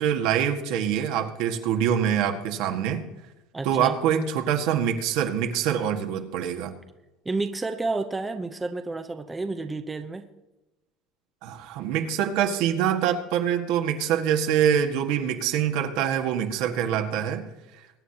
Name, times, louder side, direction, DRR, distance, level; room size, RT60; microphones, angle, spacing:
voice 1, 0.0-3.0 3.6-6.7 11.4-17.5, right 9 dB, 70° right, 5 dB, 1.7 m, -25 dB
voice 2, 3.5-4.0 7.2-10.3, right 3 dB, 15° right, 7 dB, 0.7 m, -30 dB
22.5 x 9.4 x 2.9 m, 1.0 s
cardioid pair, 135°, 0 cm